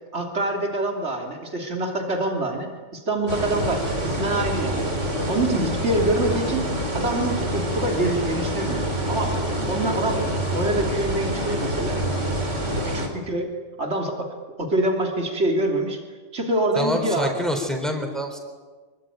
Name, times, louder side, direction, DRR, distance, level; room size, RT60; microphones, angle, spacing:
voice 1, 0.1-9.4 9.7-12.0 12.7-13.5 13.8-16.0 16.3-17.4, right 1 dB, 70° right, 2 dB, 3.5 m, -26 dB
sound 1, 3.3-13.1, right 1 dB, 85° right, 4.5 m, -26 dB
voice 2, 16.8-18.4, equal, ahead, 3 dB, 3.9 m, -26 dB
26.0 x 23.5 x 9.3 m, 1.4 s
omnidirectional pair, 1.2 m